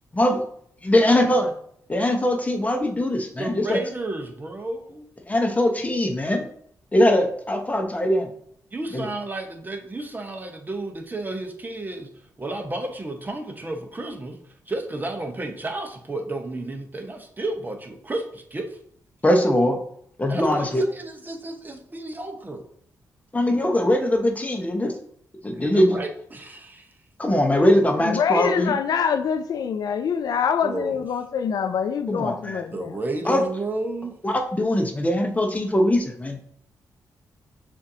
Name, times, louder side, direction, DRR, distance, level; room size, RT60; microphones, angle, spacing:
voice 1, 0.8-1.5 1.9-3.8 5.3-6.5 6.9-8.3 8.9-9.1 19.2-19.8 20.2-20.8 23.3-24.9 25.4-26.0 27.2-28.8 32.1-32.6 33.2-33.4 34.2-36.4, left 1 dB, 20° left, 0.9 m, -21 dB
voice 2, 3.4-5.1 8.7-18.8 20.3-22.6 25.5-26.9 30.6-31.0 32.7-34.2, right 2 dB, 25° right, 0.8 m, -32 dB
voice 3, 27.9-33.0, left 7 dB, 70° left, 0.4 m, -25 dB
6.8 x 2.6 x 2.7 m
cardioid pair, 70°, 7 cm